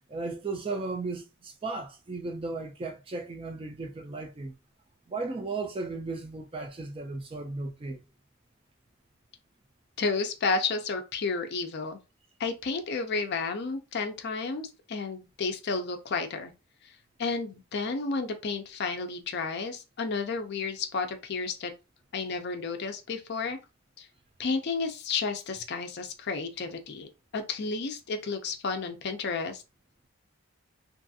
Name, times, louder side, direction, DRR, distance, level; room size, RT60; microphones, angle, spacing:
voice 1, 0.1-4.5 5.1-8.0, right 3 dB, 25° right, 0.3 m, -35 dB
voice 2, 10.0-12.0 12.4-16.5 17.2-21.7 22.1-23.6 24.0-24.1 24.4-29.6, left 4 dB, 45° left, 0.4 m, -32 dB
2.6 x 2.4 x 2.6 m
head